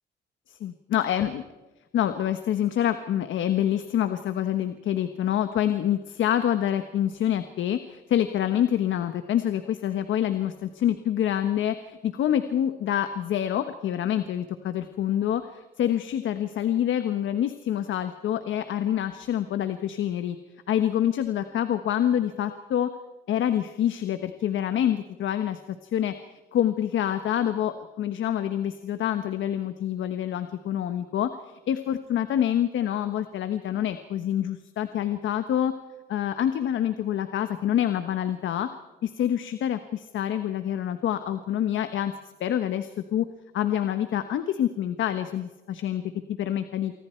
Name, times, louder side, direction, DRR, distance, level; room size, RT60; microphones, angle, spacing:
voice 1, 0.5-1.4 1.9-20.4 20.7-22.9 23.3-26.1 26.5-31.3 31.7-35.7 36.1-38.7 39.0-42.1 42.4-43.3 43.5-46.0 46.4-46.9, left 10 dB, 75° left, 9 dB, 1.3 m, -26 dB
29.0 x 24.5 x 4.5 m, 1.1 s
cardioid pair, 90°, 20 cm